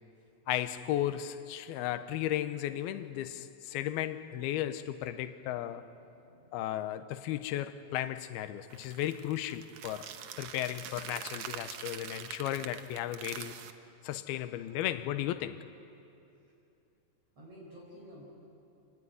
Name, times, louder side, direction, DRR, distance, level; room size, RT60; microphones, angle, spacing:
voice 1, 0.5-5.9 6.5-10.1 10.4-13.6 14.0-15.7, left 12 dB, 85° left, 2.8 m, -35 dB
voice 2, 6.1-6.7 17.4-18.2, equal, 40° right, 5.6 m, -52 dB
sound 1, 8.7-13.7, right 9 dB, 70° right, 1.8 m, -44 dB
27.5 x 21.0 x 9.4 m
omnidirectional pair, 4.4 m